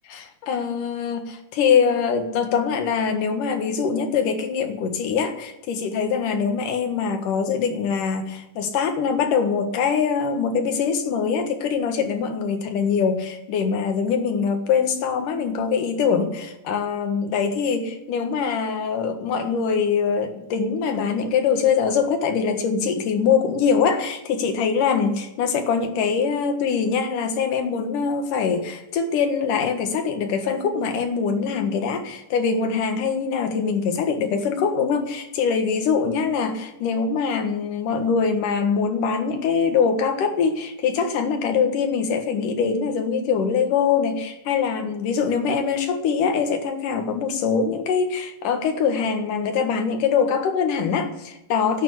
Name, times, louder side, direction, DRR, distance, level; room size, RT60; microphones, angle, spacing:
voice 1, 0.1-51.8, left 6 dB, 75° left, 6 dB, 3.1 m, -23 dB
12.0 x 9.6 x 8.3 m, 0.89 s
omnidirectional pair, 3.8 m